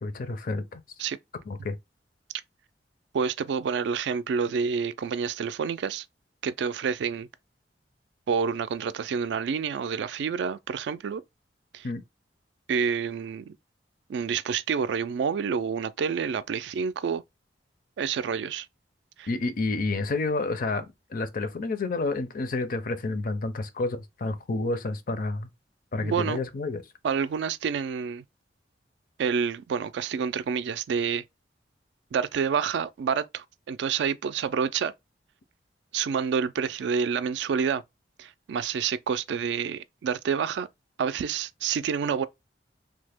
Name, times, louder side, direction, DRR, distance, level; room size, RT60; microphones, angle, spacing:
voice 1, 0.0-0.8 1.5-1.7 11.8-12.0 19.3-25.5 25.9-26.8, left 3 dB, 50° left, 0.5 m, -29 dB
voice 2, 3.1-6.1 6.4-7.3 8.3-11.2 11.7-11.9 12.7-13.6 14.1-17.2 18.0-18.7 19.2-19.3 26.0-26.4 27.0-28.2 29.2-31.2 32.1-34.9 35.9-37.8 38.2-40.7 41.0-42.2, right 6 dB, 70° right, 0.3 m, -28 dB
3.2 x 2.1 x 3.4 m
head